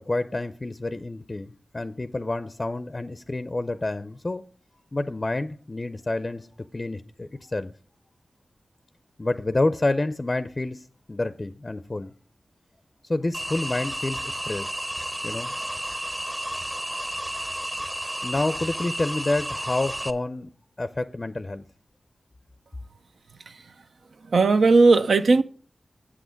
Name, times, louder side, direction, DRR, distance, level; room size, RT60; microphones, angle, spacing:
voice 1, 0.0-4.4 4.9-6.5 6.7-7.7 9.2-12.1 13.0-14.8 15.2-15.5 18.2-20.5 20.8-21.6, left 2 dB, 40° left, 0.4 m, -28 dB
sound 1, 13.3-20.1, equal, 15° right, 0.7 m, -32 dB
voice 2, 24.3-25.4, right 3 dB, 80° right, 0.4 m, -17 dB
7.5 x 6.2 x 5.0 m
cardioid pair, 40°, 0 cm